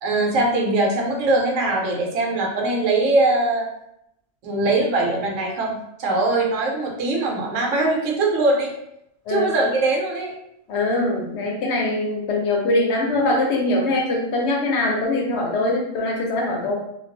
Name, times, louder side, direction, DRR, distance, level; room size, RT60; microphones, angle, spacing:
voice 1, 0.0-3.7 4.4-5.7 6.0-8.7 9.3-10.3, right 2 dB, 80° right, 0 dB, 1.0 m, -21 dB
voice 2, 10.7-16.7, left 2 dB, 65° left, -1 dB, 0.8 m, -22 dB
2.3 x 2.2 x 2.5 m, 0.79 s
omnidirectional pair, 1.3 m